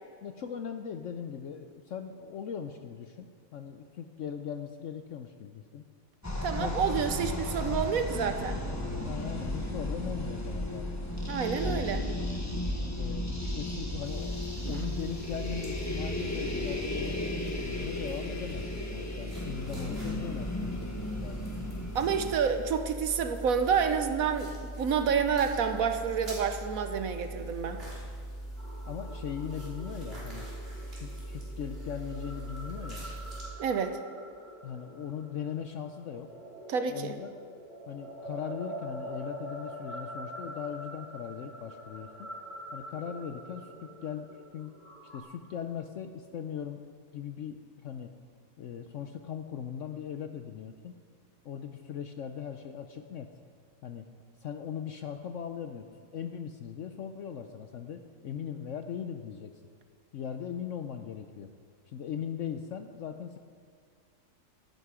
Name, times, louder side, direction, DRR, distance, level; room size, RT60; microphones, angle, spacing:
voice 1, 0.2-5.8 6.6-7.1 9.0-10.9 11.6-11.8 13.0-21.4 28.9-30.5 30.9-33.1 34.6-36.3 36.9-37.3 37.9-42.3 42.7-44.8 45.1-46.8 47.1-48.1 48.6-51.0 51.4-53.3 53.8-54.1 54.4-55.9 56.1-59.5 60.1-61.5 61.9-63.4, left 8 dB, 65° left, 7 dB, 0.8 m, -39 dB
sound 1, 6.2-22.3, left 1 dB, 10° left, 1.2 m, -35 dB
voice 2, 6.4-8.6 11.3-12.0 21.9-27.8 33.6-34.0 36.7-37.2, right 6 dB, 65° right, 8 dB, 1.1 m, -29 dB
sound 2, 14.0-33.4, right 1 dB, 35° right, 3.6 m, -41 dB
sound 3, 28.6-45.2, right 1 dB, 30° left, 1.7 m, -45 dB
15.5 x 11.0 x 4.9 m, 2.1 s
omnidirectional pair, 1.8 m